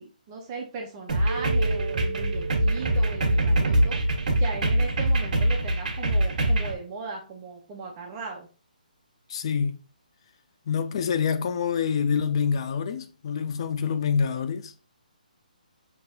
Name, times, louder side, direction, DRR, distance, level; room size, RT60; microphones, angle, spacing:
voice 1, 0.0-4.0 4.4-8.5, right 3 dB, 20° right, 0.6 m, -37 dB
sound 1, 1.1-6.7, right 1 dB, 55° right, 1.3 m, -23 dB
Mallet percussion, 1.3-5.4, right 5 dB, 20° left, 1.5 m, -37 dB
voice 2, 9.3-9.8 10.7-14.7, left 6 dB, 35° left, 0.4 m, -26 dB
5.9 x 2.9 x 2.7 m
hypercardioid pair, 160°, 5 cm